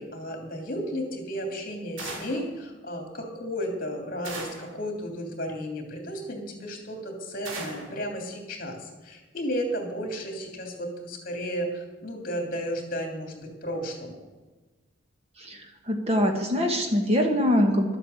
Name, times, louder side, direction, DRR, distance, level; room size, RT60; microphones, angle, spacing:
voice 1, 0.0-14.2, equal, 45° left, 3 dB, 2.9 m, -33 dB
sound 1, 2.0-2.5 4.2-4.8 7.4-8.0, right 2 dB, 75° right, 2.6 m, -37 dB
voice 2, 15.9-18.0, equal, 30° right, 4 dB, 1.4 m, -23 dB
12.0 x 8.5 x 7.9 m, 1.2 s
head